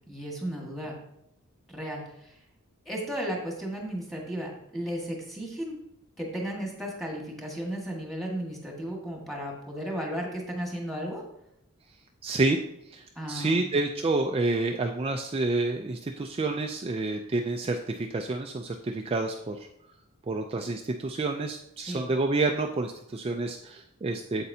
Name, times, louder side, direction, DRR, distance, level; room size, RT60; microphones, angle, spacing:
voice 1, 0.1-0.9 1.7-2.3 2.8-5.8 6.2-11.2 13.1-13.6 21.8-22.1, equal, ahead, -1 dB, 1.7 m, -34 dB
voice 2, 12.2-12.6 12.9-19.6 20.3-24.5, right 2 dB, 25° right, 3 dB, 0.4 m, -29 dB
8.3 x 7.7 x 2.7 m, 0.77 s
head